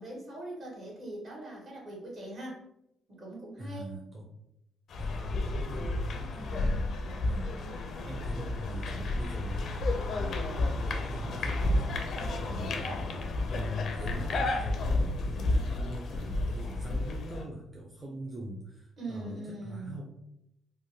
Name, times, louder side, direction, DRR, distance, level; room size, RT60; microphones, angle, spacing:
voice 1, 0.0-2.6 3.1-3.9 19.0-20.0, right 2 dB, 60° right, -3 dB, 1.4 m, -41 dB
voice 2, 3.6-4.3 5.0-6.9 7.2-7.7 8.1-13.2 13.5-20.2, equal, 25° right, -2 dB, 0.5 m, -42 dB
sound 1, 4.9-17.4, left 2 dB, 65° left, 0.5 m, -31 dB
3.4 x 2.1 x 2.7 m, 0.80 s
cardioid pair, 90°, 0 cm